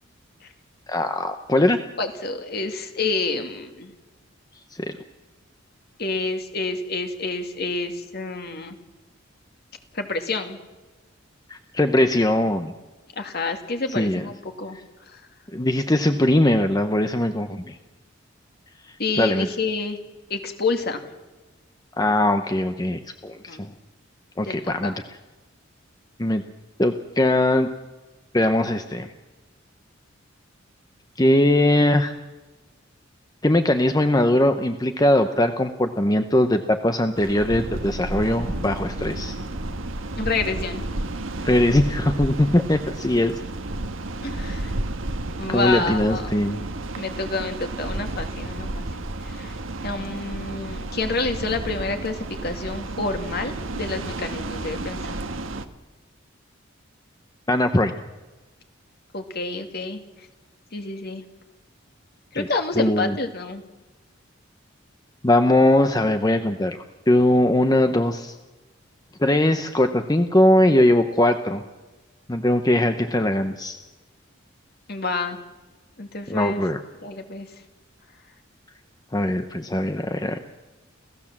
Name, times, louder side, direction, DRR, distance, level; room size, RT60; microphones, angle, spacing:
voice 1, 0.9-1.8 4.8-4.9 11.5-12.7 14.0-14.2 15.5-17.8 19.2-19.5 22.0-23.7 24.4-24.9 26.2-26.4 26.8-27.7 28.3-29.1 31.2-32.1 33.4-39.4 41.4-43.3 45.5-46.6 57.5-57.9 62.3-62.5 62.8-63.2 65.2-68.3 69.2-71.6 72.3-73.8 76.3-76.8 79.1-80.4, left 1 dB, 20° left, 7 dB, 0.9 m, -20 dB
voice 2, 2.0-3.9 6.0-8.8 9.9-10.6 13.2-14.8 15.1-15.2 19.0-20.0 20.3-21.0 23.5-23.7 24.5-25.0 40.2-40.8 44.2-44.7 45.4-46.3 47.0-48.9 49.2-49.6 49.8-55.2 59.1-60.0 60.7-61.2 62.3-63.6 74.9-75.4 76.0-76.6 77.0-77.5, left 3 dB, 50° left, 5 dB, 2.3 m, -28 dB
sound 1, 37.2-55.7, right 2 dB, 85° right, 1.4 m, -32 dB
28.0 x 16.0 x 7.4 m, 1.2 s
head